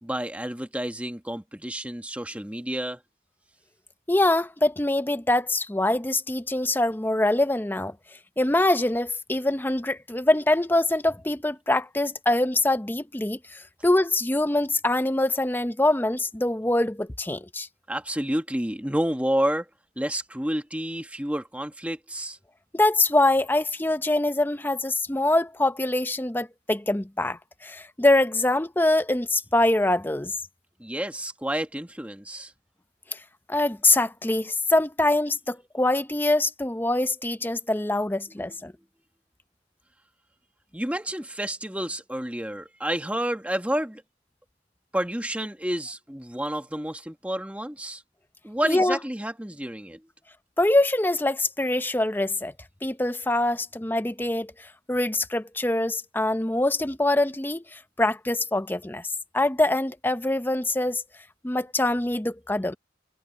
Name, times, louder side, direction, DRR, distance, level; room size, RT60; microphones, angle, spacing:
voice 1, 0.0-3.0 17.9-19.7 20.0-22.4 30.8-32.5 38.4-38.5 40.7-44.0 44.9-48.0 48.4-50.0, right 1 dB, 5° right, 1.3 m, -30 dB
voice 2, 4.1-8.0 8.4-17.7 22.7-30.3 33.1-33.2 33.5-38.7 48.6-49.0 50.6-52.5 52.8-59.1 59.3-61.0 61.4-62.8, left 2 dB, 10° left, 0.6 m, -24 dB
head